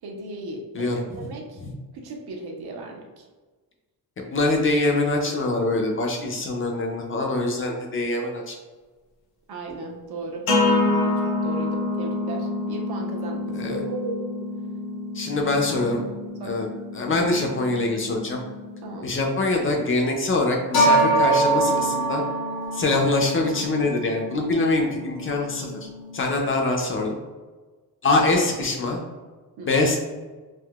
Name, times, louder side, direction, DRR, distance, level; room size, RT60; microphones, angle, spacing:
voice 1, 0.0-1.6 1.9-3.3 9.5-14.3 16.4-16.6 18.8-19.1 29.6-29.7, right 2 dB, 80° right, 1 dB, 0.7 m, -36 dB
voice 2, 4.2-8.6 13.5-13.8 15.1-16.0 16.4-16.7 16.9-18.4 19.0-22.2 22.7-25.9 26.1-27.2 28.0-29.0 29.6-30.0, left 2 dB, 35° left, 1 dB, 0.4 m, -24 dB
sound 1, 10.5-19.1 20.7-26.6, equal, 70° left, 0.9 m, -26 dB
3.5 x 2.6 x 2.3 m, 1.3 s
wide cardioid pair, 180°, 38 cm